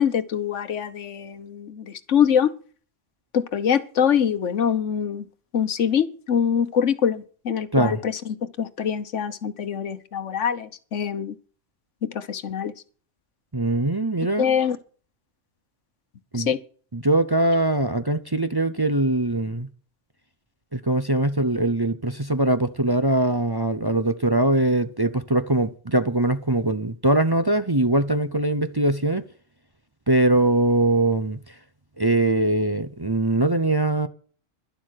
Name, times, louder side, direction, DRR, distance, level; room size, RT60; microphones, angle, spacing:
voice 1, 0.0-2.5 3.3-5.2 5.5-11.3 12.0-12.7 14.4-14.8 16.3-16.6, left 8 dB, 75° left, 1.4 m, -24 dB
voice 2, 13.5-14.5 16.3-16.5 16.9-19.7 20.7-29.2 30.1-31.5 32.0-34.1, right 1 dB, 25° right, 0.7 m, -22 dB
12.0 x 11.5 x 6.5 m
omnidirectional pair, 1.3 m